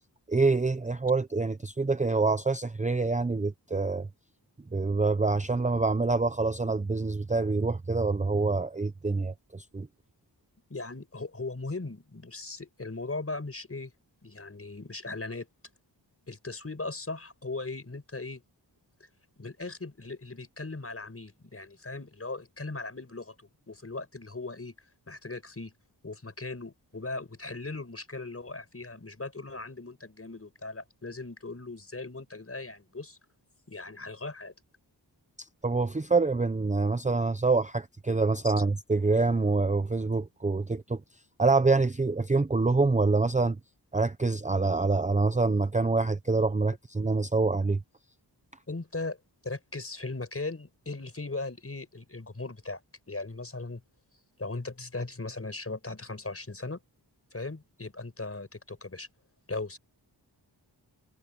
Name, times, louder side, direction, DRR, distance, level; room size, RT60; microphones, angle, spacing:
voice 1, 0.3-4.1 4.7-9.9 35.4-41.0 41.4-43.6 43.9-47.8, right 3 dB, 20° right, 0.6 m, -26 dB
voice 2, 10.7-13.9 14.2-15.5 16.3-18.4 19.4-23.4 23.7-24.7 25.1-25.7 26.0-33.2 33.7-34.5 38.4-38.5 48.7-49.2 49.4-52.8 53.1-53.8 54.4-56.8 57.3-59.1 59.5-59.8, left 3 dB, 35° left, 5.5 m, -38 dB
wide cardioid pair, 110°, 42 cm